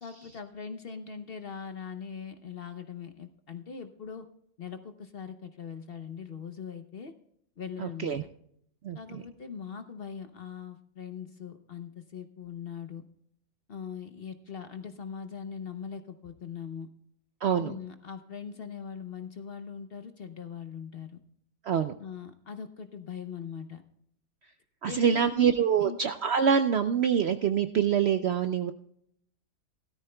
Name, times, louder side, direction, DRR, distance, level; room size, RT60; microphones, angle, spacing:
voice 1, 0.0-4.3 4.6-7.1 7.6-8.3 8.9-13.0 13.7-16.9 17.6-21.2 22.0-23.8 24.9-25.5 25.8-26.0, left 7 dB, 50° left, 8 dB, 0.8 m, -41 dB
voice 2, 7.8-8.2 8.8-9.2 17.4-17.7 21.6-21.9 24.8-28.7, right 7 dB, 65° right, 9 dB, 0.6 m, -25 dB
16.5 x 13.5 x 2.2 m, 0.70 s
omnidirectional pair, 1.6 m